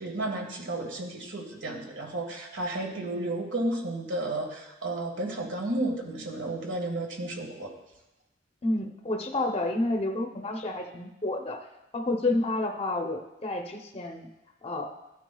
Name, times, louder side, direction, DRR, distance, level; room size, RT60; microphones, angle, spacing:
voice 1, 0.0-7.7, right 2 dB, 75° right, 2 dB, 1.6 m, -32 dB
voice 2, 8.6-11.6 11.9-14.3 14.6-14.9, left 2 dB, 35° left, 2 dB, 0.7 m, -30 dB
14.0 x 9.2 x 2.3 m, 0.97 s
head